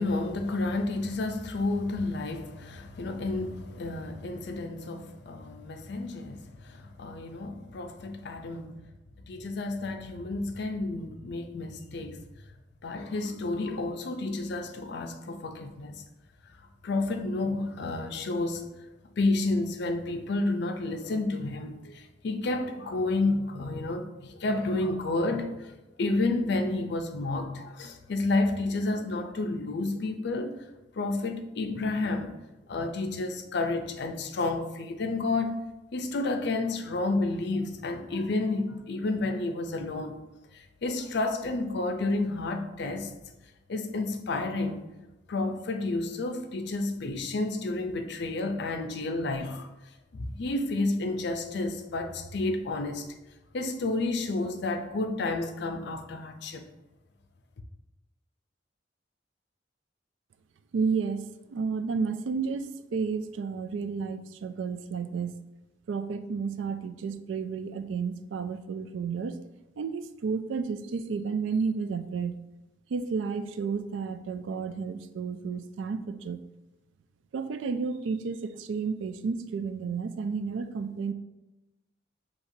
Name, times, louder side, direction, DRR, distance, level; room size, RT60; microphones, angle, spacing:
voice 1, 0.0-8.8 9.3-12.2 12.8-16.0 16.8-18.7 19.2-25.7 26.0-30.6 31.0-32.4 32.7-35.6 35.9-40.2 40.5-43.1 43.7-44.9 45.3-49.7 50.1-53.1 53.5-56.7, left 2 dB, 65° left, 0.5 m, -30 dB
voice 2, 60.7-61.2 61.5-65.4 65.9-69.4 69.8-72.4 72.9-76.4 77.3-81.1, right 5 dB, 85° right, 0.3 m, -31 dB
6.5 x 2.9 x 2.7 m
head